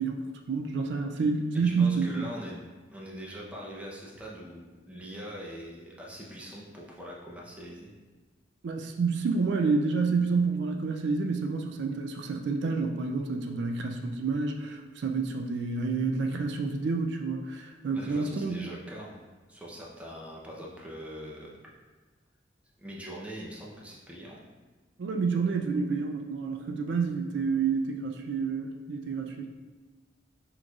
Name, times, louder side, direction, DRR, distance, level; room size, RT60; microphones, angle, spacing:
voice 1, 0.0-2.3 8.6-18.7 25.0-29.5, right 4 dB, 65° right, 3 dB, 0.3 m, -29 dB
voice 2, 1.5-7.9 17.9-21.6 22.8-24.4, equal, 5° right, -4 dB, 0.6 m, -43 dB
6.2 x 3.1 x 2.4 m, 1.3 s
head